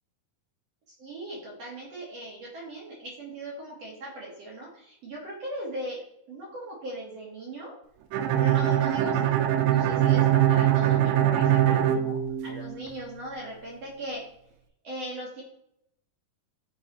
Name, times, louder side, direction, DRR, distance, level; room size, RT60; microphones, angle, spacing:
voice 1, 1.0-7.7 8.3-9.3 9.7-14.2 14.8-15.4, right 1 dB, 60° right, -4 dB, 1.7 m, -39 dB
Bowed string instrument, 8.1-12.9, right 11 dB, 90° right, 2.0 m, -22 dB
10.0 x 3.9 x 2.9 m, 0.78 s
omnidirectional pair, 4.6 m